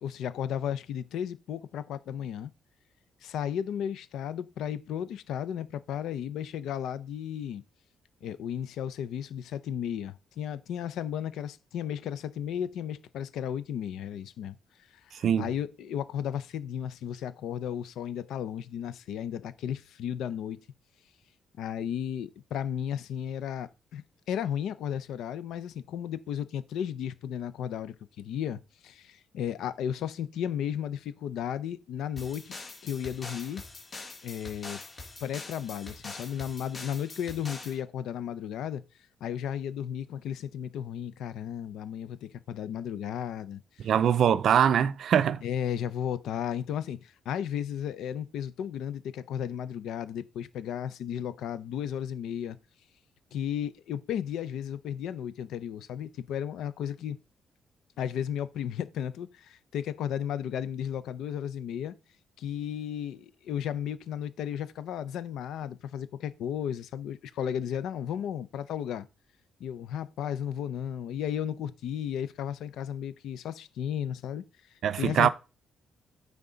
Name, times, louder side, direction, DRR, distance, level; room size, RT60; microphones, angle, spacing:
voice 1, 0.0-2.5 3.2-7.6 8.2-14.6 15.1-20.6 21.6-32.6 32.8-33.6 34.2-34.8 35.2-38.8 39.2-43.9 45.4-52.6 53.3-57.2 58.0-61.9 62.4-69.1 69.6-74.4 75.0-75.3, left 9 dB, 80° left, 0.6 m, -34 dB
sound 1, 32.2-37.8, left 3 dB, 25° left, 1.7 m, -44 dB
voice 2, 43.8-45.4 74.8-75.3, right 8 dB, 55° right, 0.4 m, -23 dB
9.4 x 3.6 x 3.9 m
cardioid pair, 155°, 0 cm